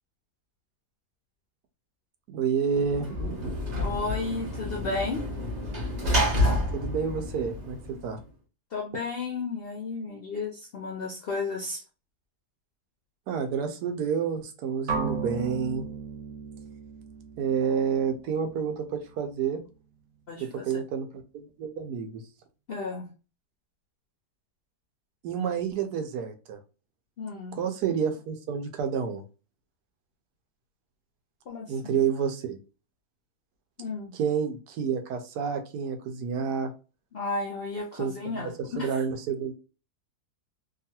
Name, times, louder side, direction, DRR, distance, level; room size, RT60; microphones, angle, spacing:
voice 1, 2.3-3.5 6.7-8.2 13.3-15.8 17.4-19.6 20.4-21.1 21.6-22.2 25.2-26.6 27.5-29.2 31.7-32.6 34.1-36.7 38.0-39.5, right 7 dB, 85° right, 6 dB, 1.2 m, -29 dB
Sliding door / Slam, 2.8-8.2, left 1 dB, 35° right, 0.7 m, -29 dB
voice 2, 3.8-5.2 8.7-11.8 20.3-20.8 22.7-23.1 27.2-27.6 31.5-32.0 33.8-34.2 37.1-39.0, left 3 dB, 65° left, 0 dB, 0.5 m, -33 dB
sound 1, 14.9-18.8, right 5 dB, 65° right, 1.2 m, -35 dB
3.0 x 2.4 x 2.7 m, 0.33 s
omnidirectional pair, 1.7 m